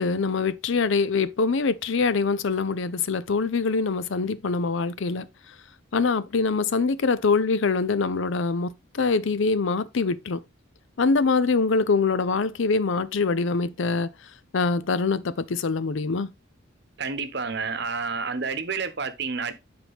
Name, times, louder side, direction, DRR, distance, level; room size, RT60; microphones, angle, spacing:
voice 1, 0.0-5.3 5.9-10.4 11.0-14.1 14.5-16.3, left 4 dB, 65° left, 0.5 m, -24 dB
voice 2, 17.0-19.5, right 4 dB, 55° right, 0.9 m, -29 dB
9.4 x 4.4 x 3.5 m
head